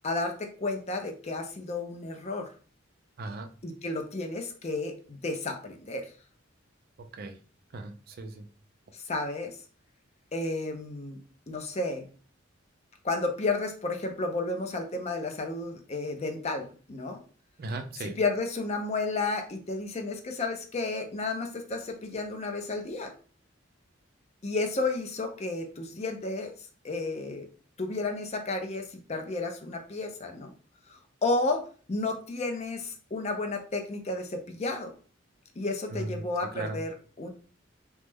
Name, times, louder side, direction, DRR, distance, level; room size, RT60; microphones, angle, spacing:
voice 1, 0.0-2.5 3.6-6.1 8.9-9.6 10.3-11.2 11.5-12.0 13.0-17.2 18.0-23.1 24.4-26.5 26.8-27.5 27.8-30.5 30.9-34.9 35.6-37.3, left 3 dB, 35° left, 4 dB, 0.5 m, -32 dB
voice 2, 3.2-3.5 7.1-7.4 7.7-8.5 17.6-18.2 35.9-36.2 36.5-36.8, right 2 dB, 50° right, 6 dB, 0.4 m, -37 dB
3.1 x 2.1 x 3.4 m, 0.39 s
head